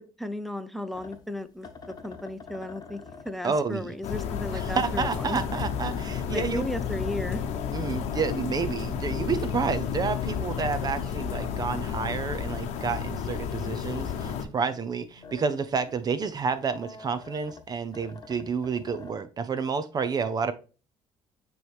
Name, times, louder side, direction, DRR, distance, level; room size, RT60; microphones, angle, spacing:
voice 1, 0.2-3.0 3.2-5.4 6.3-7.4, left 1 dB, ahead, 0.6 m, -34 dB
sound 1, 0.9-14.5 14.9-19.1, left 4 dB, 35° left, 1.0 m, -47 dB
sound 2, 3.1-16.0 16.5-16.6, left 2 dB, 15° right, 3.3 m, -49 dB
voice 2, 3.4-3.9 4.5-6.7 7.7-20.5, right 5 dB, 35° right, 0.5 m, -30 dB
sound 3, 4.0-14.4, left 8 dB, 75° left, 0.9 m, -32 dB
9.2 x 3.1 x 3.4 m
cardioid pair, 95°, 11 cm